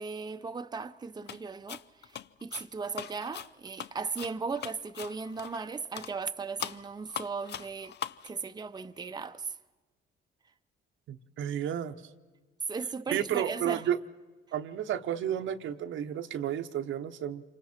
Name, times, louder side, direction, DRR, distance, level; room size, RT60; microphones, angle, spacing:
voice 1, 0.0-8.0 8.2-9.5 12.7-13.8, right 4 dB, 20° right, 0.7 m, -37 dB
sound 1, 1.3-1.4 1.7-5.7 5.9-6.1 6.6-8.3, left 10 dB, 60° left, 0.6 m, -41 dB
voice 2, 11.1-11.9 13.1-14.0 14.5-17.4, right 10 dB, 80° right, 1.0 m, -32 dB
27.5 x 25.0 x 4.4 m
cardioid pair, 90°, 20 cm